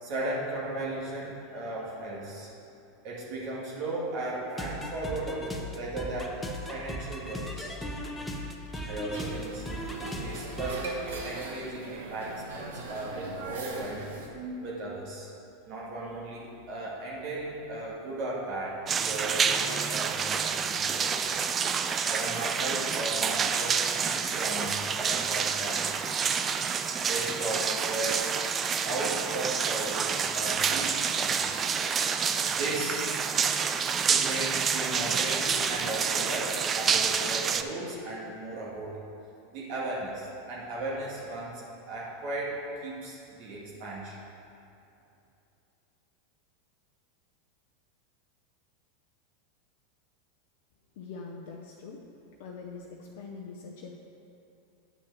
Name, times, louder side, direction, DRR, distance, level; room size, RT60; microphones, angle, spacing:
voice 1, 0.0-2.5 3.0-6.4 6.7-7.8 8.7-9.7 10.1-14.0 14.3-15.3 15.7-21.3 22.1-26.1 26.9-28.3 28.8-31.6 32.1-33.1 34.1-39.0 39.5-41.6 41.9-44.2, right 2 dB, 55° right, -5 dB, 1.9 m, -36 dB
sound 1, 4.5-10.8, equal, 10° left, 1.0 m, -37 dB
sound 2, 9.1-14.3, right 3 dB, 75° right, 1.1 m, -41 dB
sound 3, 18.9-37.6, right 6 dB, 30° right, 0.4 m, -28 dB
voice 2, 51.0-52.0 52.4-54.0, left 4 dB, 65° left, -1 dB, 0.7 m, -43 dB
9.2 x 4.4 x 6.1 m, 2.7 s
hypercardioid pair, 95°, 0 cm